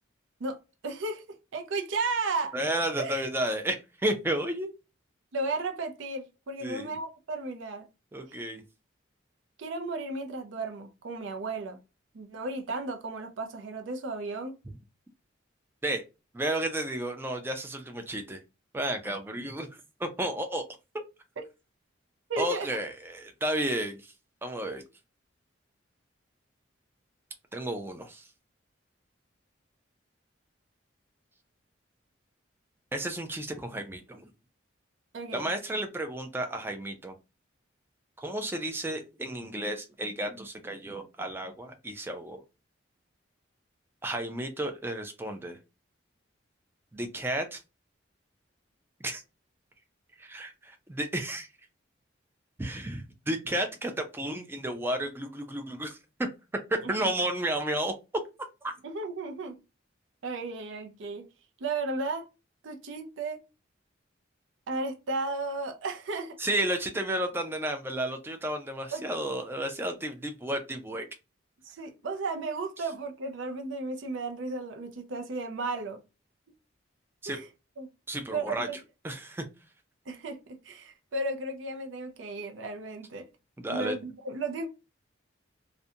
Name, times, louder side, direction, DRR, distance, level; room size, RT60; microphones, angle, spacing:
voice 1, 0.8-1.2 1.5-2.5 3.0-3.3 5.3-7.8 8.3-8.4 9.6-11.8 12.1-14.5 21.4-21.5 22.3-22.7 35.1-35.5 56.8-57.1 58.8-59.6 60.2-61.3 61.6-62.3 62.6-63.4 64.7-66.4 68.9-69.2 71.6-76.0 77.3-77.5 77.8-77.9 78.3-78.8 80.1-83.3 83.7-84.7, right 3 dB, 75° right, 0.5 m, -34 dB
voice 2, 2.5-4.7 6.6-7.0 8.1-8.6 15.8-16.0 16.3-18.4 18.7-19.7 20.0-20.6 22.4-24.0 24.4-24.8 27.5-28.3 32.9-34.3 35.3-37.2 38.2-42.4 44.0-45.6 46.9-47.6 49.0-49.2 50.2-51.5 52.6-56.0 56.7-57.9 58.6-58.7 66.4-71.1 77.2-77.4 78.1-78.7 79.0-79.5 83.6-84.1, right 1 dB, 10° right, 0.3 m, -32 dB
2.4 x 2.1 x 2.6 m
head